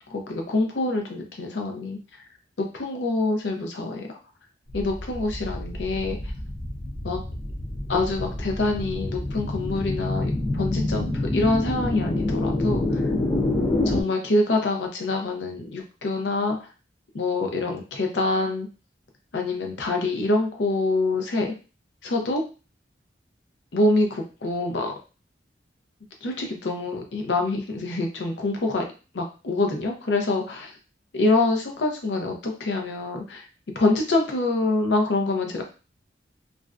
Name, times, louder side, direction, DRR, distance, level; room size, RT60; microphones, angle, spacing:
voice 1, 0.1-2.0 2.6-4.1 4.7-6.2 7.0-7.2 7.9-13.0 13.9-16.6 17.1-18.7 19.3-21.5 22.0-22.4 23.7-24.9 26.2-28.8 29.1-30.7 31.1-33.4 33.8-35.6, left 2 dB, 75° left, 2 dB, 0.6 m, -25 dB
sound 1, 4.7-14.0, left 2 dB, 25° left, 0.4 m, -27 dB
2.4 x 2.1 x 2.3 m, 0.33 s
head